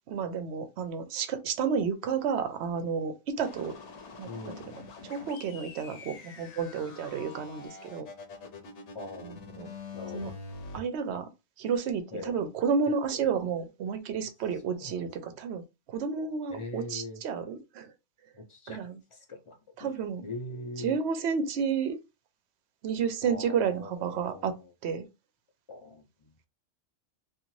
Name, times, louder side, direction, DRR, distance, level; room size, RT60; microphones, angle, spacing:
voice 1, 0.1-3.7 4.2-4.7 5.0-8.1 9.2-9.7 10.1-10.3 10.7-11.3 11.6-15.6 15.9-17.9 18.7-19.0 19.8-20.2 20.8-22.0 22.8-24.5 24.8-25.1, right 6 dB, 70° right, 0.9 m, -31 dB
sound 1, 3.4-10.8, left 4 dB, 70° left, 1.0 m, -45 dB
voice 2, 4.2-4.8 8.9-9.4 9.9-10.4 12.1-12.4 13.1-13.4 14.7-15.4 16.5-17.2 18.3-21.0 23.2-24.7 25.7-26.3, left 2 dB, 35° left, 0.6 m, -42 dB
2.5 x 2.5 x 3.0 m
omnidirectional pair, 1.2 m